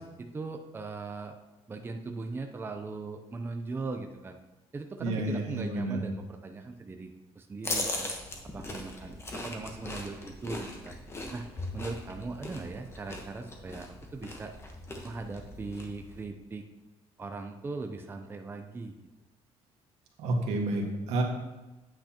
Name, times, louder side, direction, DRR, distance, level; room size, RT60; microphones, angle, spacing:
voice 1, 0.0-1.4 1.7-4.4 4.7-8.1 8.5-10.9 11.3-11.5 11.7-14.5 15.0-16.7 17.2-18.9, right 3 dB, 20° right, 5 dB, 0.5 m, -39 dB
voice 2, 5.0-6.0 20.2-21.2, right 2 dB, 90° right, 0 dB, 1.7 m, -30 dB
sound 1, 7.6-16.3, left 2 dB, 20° left, 1.1 m, -39 dB
9.0 x 7.9 x 2.9 m, 1.1 s
cardioid pair, 135°, 11 cm